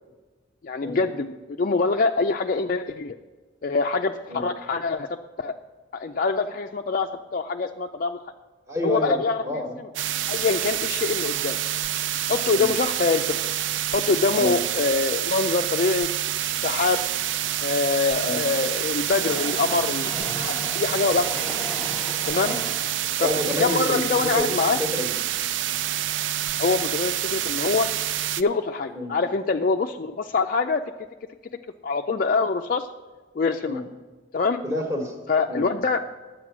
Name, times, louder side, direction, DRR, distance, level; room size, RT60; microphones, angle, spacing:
voice 1, 0.6-3.2 3.6-5.6 5.9-8.2 8.8-9.4 10.3-11.6 12.3-13.4 13.9-16.2 16.6-17.0 17.6-21.6 22.3-22.5 23.2-23.3 23.6-24.8 26.6-27.9 28.4-30.8 31.8-32.9 33.4-33.8 34.3-34.6 35.3-36.0, left 4 dB, 45° left, 4 dB, 0.4 m, -24 dB
voice 2, 8.7-9.8 12.5-12.8 14.3-14.6 18.2-18.4 22.5-22.6 23.2-24.5 24.8-25.2 28.9-29.1 33.6-33.8 34.6-35.1 35.5-35.7, left 1 dB, 15° right, 0 dB, 1.3 m, -28 dB
sound 1, 10.0-28.4, right 12 dB, 65° right, 0.4 m, -27 dB
Train, 17.4-24.7 25.2-25.3 25.5-25.6, left 1 dB, 10° left, 0.8 m, -38 dB
11.0 x 8.1 x 6.0 m, 1.3 s
head